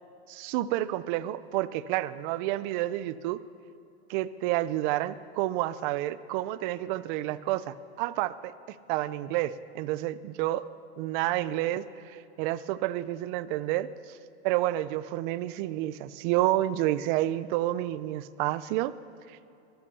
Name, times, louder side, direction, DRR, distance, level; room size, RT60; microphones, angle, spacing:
voice 1, 0.3-3.4 4.1-10.7 11.0-14.2 14.4-18.9 19.3-19.4, right 15 dB, 50° right, 15 dB, 0.6 m, -30 dB
15.0 x 11.5 x 6.9 m, 2.7 s
supercardioid pair, 140°, 32 cm